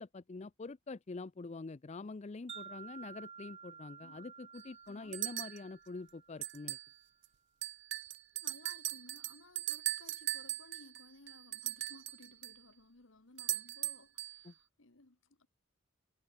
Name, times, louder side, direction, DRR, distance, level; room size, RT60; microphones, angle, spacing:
voice 1, 0.0-6.8 14.4-14.5, left 3 dB, 30° left, 0.4 m, -46 dB
Wind chime, 2.5-6.8, right 6 dB, 25° right, 1.3 m, -52 dB
sound 1, 4.6-4.7 5.1-5.6 6.4-6.9 7.2-7.3 7.6-12.6 13.4-14.4, right 18 dB, 55° right, 0.4 m, -39 dB
voice 2, 4.9-5.2 8.3-15.5, left 2 dB, 65° left, 1.6 m, -59 dB
head